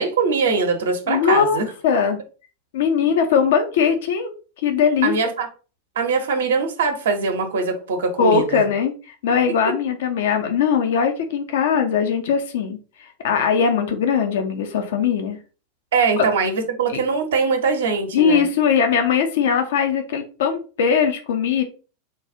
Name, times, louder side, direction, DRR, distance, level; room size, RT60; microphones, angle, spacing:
voice 1, 0.0-1.7 3.0-3.1 5.0-5.5 6.0-8.6 15.9-18.4, right 4 dB, 65° right, 6 dB, 0.8 m, -22 dB
voice 2, 1.1-2.2 2.7-4.3 4.6-5.1 8.2-15.4 16.2-16.3 18.1-21.6, left 6 dB, 60° left, 6 dB, 0.6 m, -20 dB
3.9 x 2.3 x 3.9 m, 0.35 s
figure-of-eight pair, 85°, 0 cm